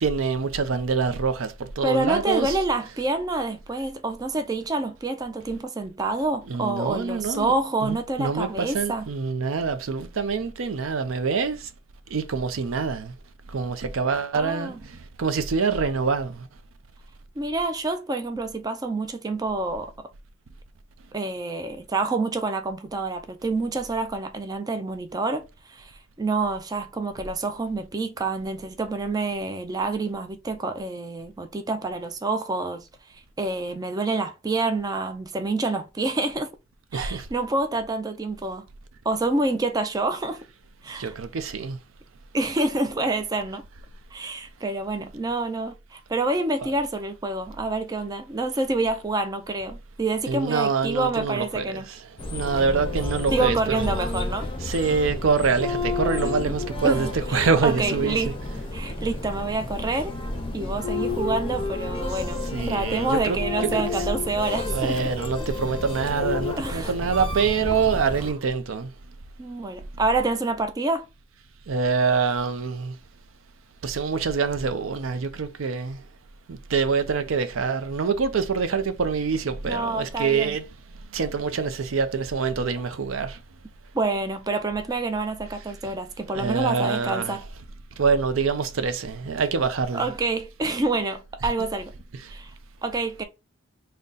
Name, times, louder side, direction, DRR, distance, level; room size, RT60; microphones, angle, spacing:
voice 1, 0.0-2.5 6.5-7.5 7.8-11.7 12.1-13.1 13.5-16.5 36.9-37.3 41.0-41.8 50.3-52.0 52.3-54.0 54.6-58.3 62.5-63.4 63.7-63.8 64.7-68.9 71.7-72.9 73.8-76.0 76.5-80.6 81.1-83.4 86.3-87.4 88.0-90.1, right 5 dB, 80° right, 0.5 m, -25 dB
voice 2, 1.8-9.1 14.3-14.8 17.4-19.9 21.1-36.5 36.9-38.7 39.1-40.4 40.8-41.1 42.3-43.7 44.1-51.8 53.3-54.5 56.2-56.6 56.8-58.4 58.7-60.1 60.5-65.0 66.5-66.9 69.4-71.1 79.6-80.6 83.9-87.4 89.9-91.9 92.3-92.5 92.8-93.2, right 2 dB, 20° right, 0.4 m, -27 dB
sound 1, 52.2-68.3, left 3 dB, 25° left, 0.6 m, -30 dB
3.7 x 2.2 x 3.9 m
head